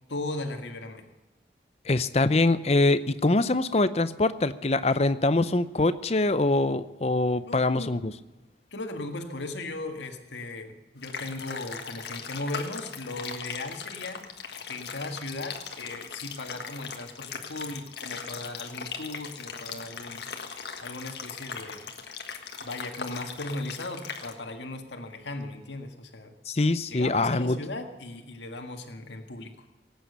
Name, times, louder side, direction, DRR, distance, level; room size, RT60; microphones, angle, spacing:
voice 1, 0.1-1.0 7.5-8.0 8.7-14.3 14.7-20.3 20.8-21.9 22.6-26.3 26.9-29.6, left 2 dB, 85° left, 5 dB, 1.8 m, -37 dB
voice 2, 1.9-8.1 26.5-27.6, left 2 dB, 35° left, 14 dB, 0.6 m, -24 dB
sound 1, 11.0-24.3, left 6 dB, 70° left, 1.6 m, -39 dB
18.0 x 9.0 x 6.8 m, 1.1 s
head